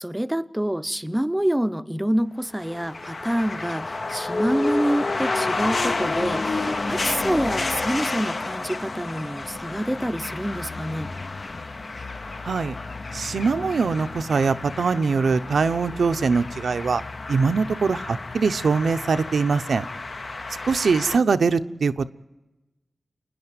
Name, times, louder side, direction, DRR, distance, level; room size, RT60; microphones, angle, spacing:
voice 1, 0.0-11.2, right 1 dB, 10° right, 0.7 m, -27 dB
sound 1, 2.6-21.2, left 3 dB, 45° left, 0.7 m, -30 dB
voice 2, 12.4-12.8 13.1-17.0 17.3-19.9 20.6-22.1, right 4 dB, 85° right, 0.7 m, -22 dB
28.0 x 10.0 x 9.6 m
wide cardioid pair, 90°, 0 cm